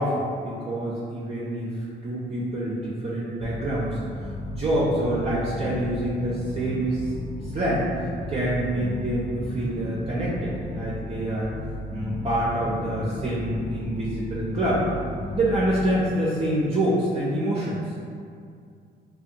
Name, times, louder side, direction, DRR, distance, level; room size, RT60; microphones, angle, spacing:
voice 1, 0.0-4.0 4.5-7.1 7.5-11.5 11.9-14.8 15.3-17.8, right 1 dB, 30° right, -8 dB, 0.4 m, -26 dB
sound 1, 3.4-16.3, left 1 dB, 80° left, 0.8 m, -35 dB
2.6 x 2.2 x 2.6 m, 2.3 s
cardioid pair, 90°, 20 cm